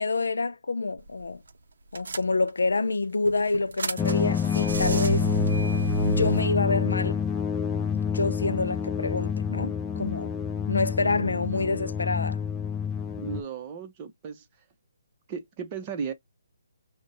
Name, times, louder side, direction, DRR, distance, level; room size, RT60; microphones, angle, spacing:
voice 1, 0.0-1.4 1.9-5.3 6.0-7.2 8.1-10.3 10.7-12.4, left 3 dB, 85° left, 0.5 m, -27 dB
sound 1, 1.0-1.2 1.5-1.6 2.0-2.7 3.2-6.4, right 2 dB, 75° right, 0.6 m, -30 dB
sound 2, 4.0-13.4, left 7 dB, 10° left, 0.4 m, -28 dB
voice 2, 13.2-14.5 15.3-16.1, right 6 dB, 25° right, 0.7 m, -35 dB
5.1 x 2.1 x 2.7 m
hypercardioid pair, 160°, 0 cm